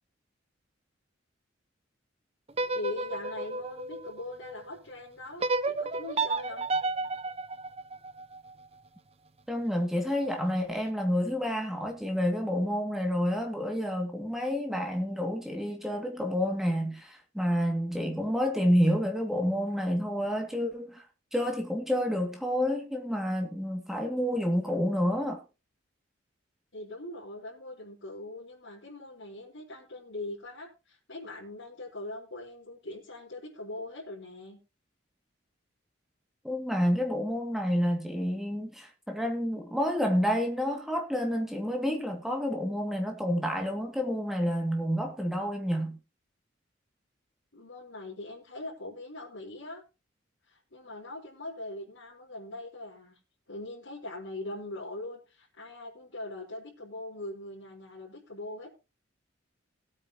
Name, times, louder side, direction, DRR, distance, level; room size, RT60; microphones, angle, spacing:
sound 1, 2.5-4.7 5.4-8.5, right 3 dB, 30° right, 0.8 m, -32 dB
voice 1, 2.7-6.7 26.7-34.6 47.5-49.8 50.5-53.2 53.5-58.7, left 2 dB, 70° left, 4.4 m, -41 dB
voice 2, 9.5-21.0 21.3-25.4 36.4-46.0, equal, ahead, 2.3 m, -29 dB
19.5 x 8.8 x 3.0 m
head